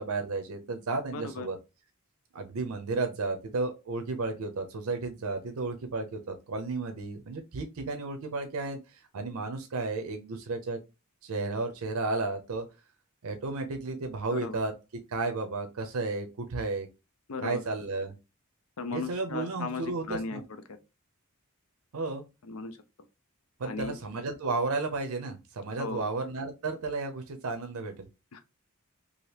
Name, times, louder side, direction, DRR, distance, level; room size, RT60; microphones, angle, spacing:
voice 1, 0.0-1.6 2.3-10.8 11.2-12.6 13.2-14.7 15.1-16.9 17.4-18.1 18.9-20.4 21.9-22.3 23.6-28.1, right 3 dB, 80° right, 0.5 m, -33 dB
voice 2, 1.1-1.5 14.3-14.6 17.3-17.6 18.8-20.4 22.4-22.8 23.6-24.0 25.8-26.0 28.3-28.4, left 3 dB, 75° left, 0.5 m, -36 dB
2.8 x 2.5 x 3.2 m
head